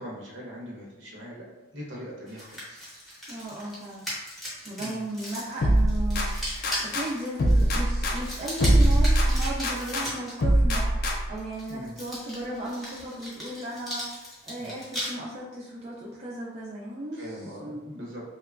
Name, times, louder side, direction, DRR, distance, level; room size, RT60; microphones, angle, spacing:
voice 1, 0.0-1.5 1.7-2.8 3.3-3.5 4.8-5.0 11.7-12.0 14.6-14.8 17.2-18.2, equal, 75° right, -4 dB, 0.8 m, -41 dB
sound 1, 2.3-10.3 11.4-15.1, equal, ahead, 0.7 m, -37 dB
voice 2, 3.3-4.1 4.6-6.3 6.6-17.4 17.6-17.8, right 1 dB, 30° right, -6 dB, 0.4 m, -36 dB
sound 2, 5.6-7.1 7.4-10.1 10.4-11.4, right 1 dB, 50° left, 0.3 m, -23 dB
2.8 x 2.2 x 2.3 m, 1.1 s
head